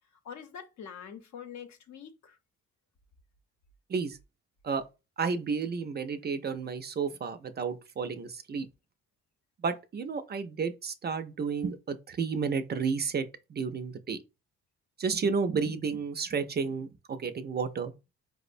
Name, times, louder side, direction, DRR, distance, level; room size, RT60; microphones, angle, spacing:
voice 1, 0.2-2.4, left 7 dB, 65° left, 0.8 m, -45 dB
voice 2, 5.2-8.7 9.6-14.2 15.0-17.9, right 5 dB, 35° right, 0.4 m, -32 dB
4.6 x 2.1 x 2.5 m
cardioid pair, 90°, 30 cm